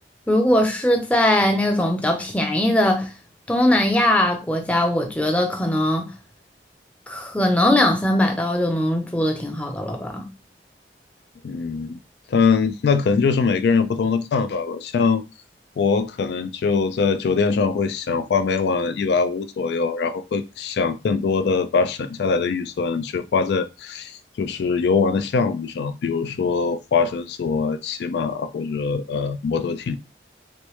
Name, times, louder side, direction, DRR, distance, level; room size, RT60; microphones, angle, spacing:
voice 1, 0.3-3.1 3.5-6.1 7.1-10.3, left 1 dB, 10° left, 0.5 m, -20 dB
voice 2, 11.4-12.0 12.3-15.2 15.8-30.0, left 5 dB, 70° left, 0.3 m, -22 dB
3.1 x 3.0 x 3.1 m
head